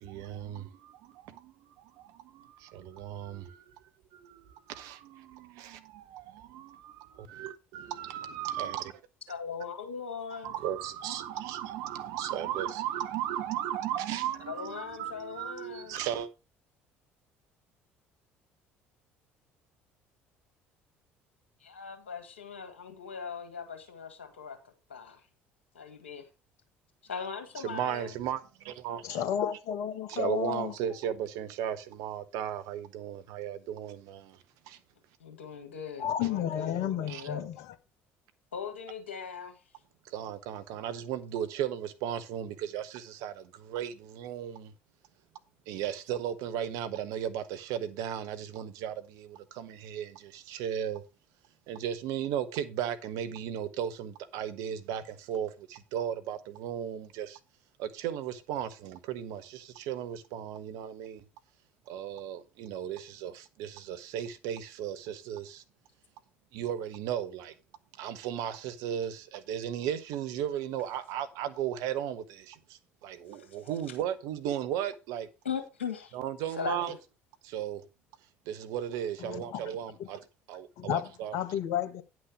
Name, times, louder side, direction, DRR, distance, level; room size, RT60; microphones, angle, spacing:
voice 1, 0.0-3.6 4.1-9.0 10.4-16.3 27.6-29.2 30.1-34.4 34.7-34.8 37.1-37.3 40.0-44.7 45.7-51.0 51.7-57.4 57.8-61.2 61.9-65.6 66.5-67.5 68.0-75.3 76.1-76.9 77.4-77.8 78.5-81.4, right 10 dB, 65° right, 1.0 m, -36 dB
voice 2, 9.3-10.5 14.5-16.0 21.6-24.6 24.9-25.2 25.7-26.3 27.0-28.2 35.2-37.4 38.5-39.6 73.3-73.6 75.4-76.2 76.6-77.0, left 6 dB, 80° left, 1.9 m, -39 dB
voice 3, 29.0-30.7 36.0-37.5 79.2-79.6 80.8-82.0, left 10 dB, 60° left, 1.2 m, -32 dB
9.8 x 6.2 x 4.9 m
figure-of-eight pair, 55°, 6 cm